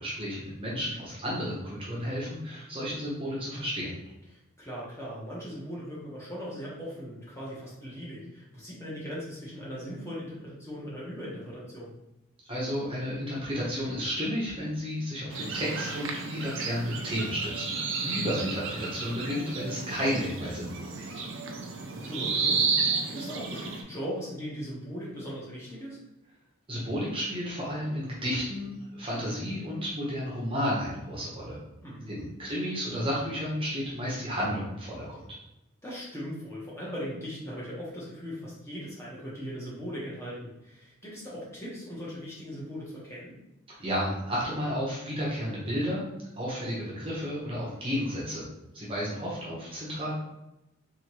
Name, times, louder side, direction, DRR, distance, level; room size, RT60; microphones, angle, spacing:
voice 1, 0.0-3.9 12.5-17.7 18.1-21.2 26.7-31.6 32.1-35.2 43.8-46.0 46.4-48.4 48.7-50.1, equal, 25° right, -6 dB, 1.0 m, -32 dB
voice 2, 4.3-11.9 18.0-18.4 22.0-26.0 31.8-32.3 35.8-43.3, equal, 10° left, -7 dB, 1.2 m, -39 dB
sound 1, 15.3-23.8, right 4 dB, 65° right, 0.6 m, -32 dB
3.7 x 3.5 x 3.1 m, 0.90 s
head